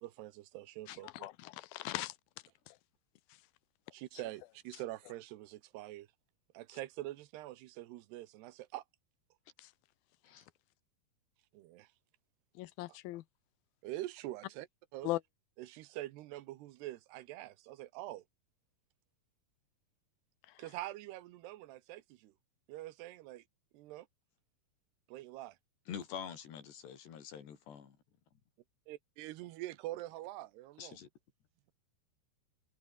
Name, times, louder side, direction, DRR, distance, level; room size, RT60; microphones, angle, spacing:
voice 1, 0.0-1.3 3.9-6.1 6.5-8.8 11.5-11.9 12.9-13.0 13.8-14.7 14.9-15.1 15.6-18.2 20.6-22.3 22.7-23.4 23.7-24.1 25.1-25.6 28.9-31.0, right 16 dB, 80° right, 3.2 m, -45 dB
voice 2, 0.9-2.1 2.7-2.8 12.6-13.2 15.0-15.2, left 17 dB, 75° left, 2.5 m, -39 dB
voice 3, 25.9-28.0 30.8-31.1, left 8 dB, 90° left, 5.6 m, -46 dB
omnidirectional pair, 4.7 m